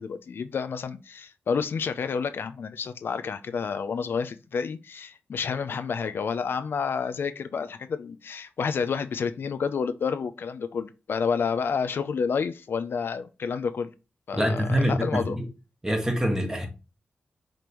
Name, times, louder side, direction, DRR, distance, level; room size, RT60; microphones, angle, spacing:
voice 1, 0.0-13.9 14.3-15.4, left 6 dB, 70° left, 0.5 m, -29 dB
voice 2, 14.3-15.5 15.8-16.7, equal, 15° right, 1.6 m, -25 dB
6.0 x 5.1 x 3.1 m
wide cardioid pair, 120°, 4 cm